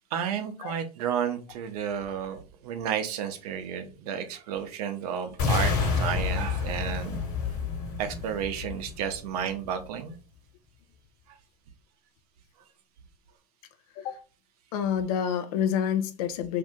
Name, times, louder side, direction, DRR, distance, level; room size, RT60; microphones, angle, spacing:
voice 1, 0.1-7.2 8.0-10.2 15.3-15.4, right 8 dB, 65° right, 0.7 m, -32 dB
sound 1, 5.4-9.4, left 5 dB, 40° left, 1.4 m, -29 dB
voice 2, 14.7-16.6, left 8 dB, 60° left, 0.5 m, -28 dB
2.7 x 2.5 x 3.6 m
hypercardioid pair, 105°, 21 cm